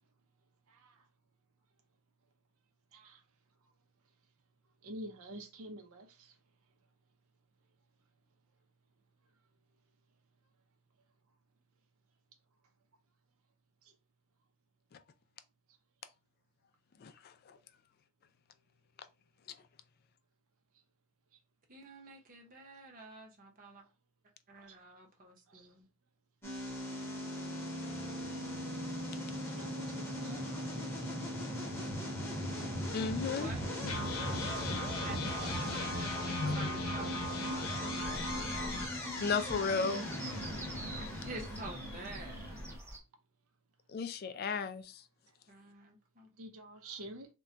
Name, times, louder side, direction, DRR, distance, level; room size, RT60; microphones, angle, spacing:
voice 1, 0.7-1.0 2.9-3.2 4.8-6.3 25.5-25.7 28.7-28.9 29.6-31.2 31.5-31.8 33.5-33.8 34.4-35.1 35.3-35.9 38.2-38.7 46.4-47.3, right 1 dB, 80° right, 0.6 m, -49 dB
voice 2, 17.0-17.6 27.8-28.1 32.9-33.5 36.4-36.7 39.2-40.5 43.9-45.0, left 4 dB, 45° left, 0.3 m, -35 dB
voice 3, 21.7-23.8 24.5-25.9 33.3-33.6 35.0-38.2 40.9-42.6 45.5-46.3, right 2 dB, 40° right, 0.8 m, -49 dB
sound 1, 26.4-42.8, equal, 10° left, 0.8 m, -39 dB
sound 2, 27.8-31.0 31.4-31.5 31.8-32.0 32.6-32.7 33.8-38.9, left 2 dB, 85° left, 0.7 m, -40 dB
sound 3, 38.0-43.0, right 1 dB, 10° right, 0.5 m, -46 dB
2.2 x 2.2 x 3.7 m
head